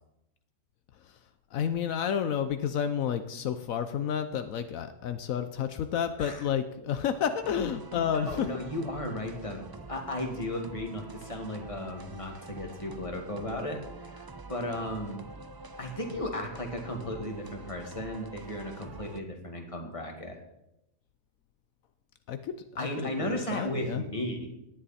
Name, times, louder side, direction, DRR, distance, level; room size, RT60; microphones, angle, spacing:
voice 1, 1.5-8.5 22.3-24.0, left 8 dB, 80° left, 9 dB, 1.1 m, -31 dB
sound 1, 7.4-19.2, right 3 dB, 40° right, 0.3 m, -46 dB
voice 2, 7.9-9.6 9.9-15.2 15.8-20.4 22.8-24.5, left 1 dB, 25° left, 2 dB, 2.1 m, -35 dB
17.5 x 10.5 x 4.2 m, 0.86 s
omnidirectional pair, 1.4 m